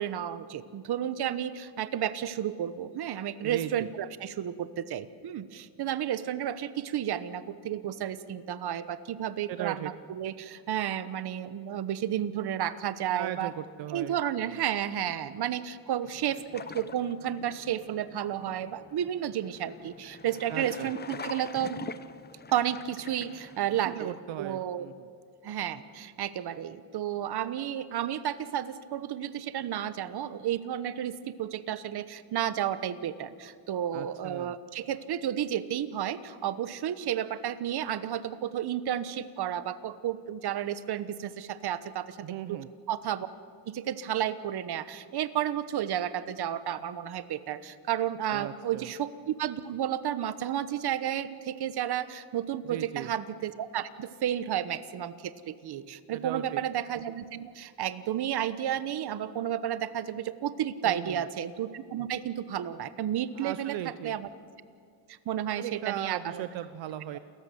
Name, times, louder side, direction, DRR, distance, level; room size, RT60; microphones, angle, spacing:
voice 1, 0.0-13.5 13.9-21.8 22.5-24.9 25.4-42.2 42.5-42.6 42.9-43.3 43.7-63.8 64.0-64.3 65.2-66.4, right 10 dB, 55° right, 14 dB, 1.2 m, -32 dB
voice 2, 3.4-3.9 9.5-9.9 13.1-14.6 20.5-20.9 23.8-25.1 33.9-34.6 42.2-42.7 48.3-48.9 52.6-53.1 56.1-56.6 60.8-61.2 63.4-64.1 65.3-67.2, right 12 dB, 75° right, 12 dB, 0.8 m, -38 dB
sound 1, 16.0-24.0, left 5 dB, 20° left, 0.7 m, -45 dB
29.0 x 14.5 x 8.0 m, 2.4 s
cardioid pair, 120°, 46 cm